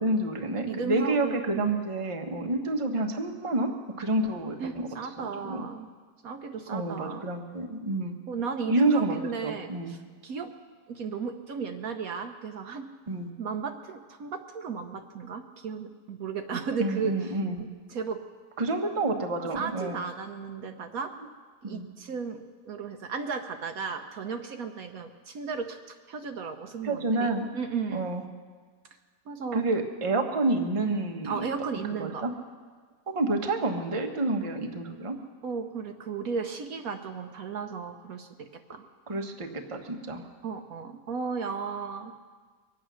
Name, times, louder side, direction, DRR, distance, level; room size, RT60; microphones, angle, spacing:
voice 1, 0.0-4.9 5.2-5.6 6.7-8.2 8.7-9.2 9.4-9.9 13.1-13.3 16.8-17.5 18.6-20.0 21.6-21.9 26.8-27.5 27.9-28.2 29.5-31.4 32.0-32.3 33.1-35.1 39.1-40.2, right 2 dB, 25° right, 3 dB, 1.0 m, -28 dB
voice 2, 0.7-1.7 4.6-5.9 6.2-7.2 8.3-10.5 10.9-12.9 13.4-17.4 17.9-18.2 19.4-21.1 21.6-28.1 29.3-29.6 31.2-32.3 35.4-38.8 40.4-42.1, right 5 dB, 65° right, 5 dB, 1.2 m, -35 dB
23.0 x 8.7 x 6.2 m, 1.5 s
omnidirectional pair, 1.7 m